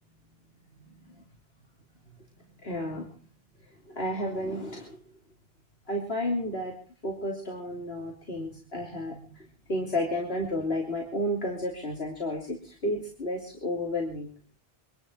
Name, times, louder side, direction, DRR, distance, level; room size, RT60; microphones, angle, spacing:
voice 1, 2.6-3.1 3.9-5.0 5.9-6.7 7.0-14.3, left 1 dB, 75° left, -1 dB, 3.4 m, -32 dB
25.0 x 12.0 x 4.5 m, 0.39 s
omnidirectional pair, 1.1 m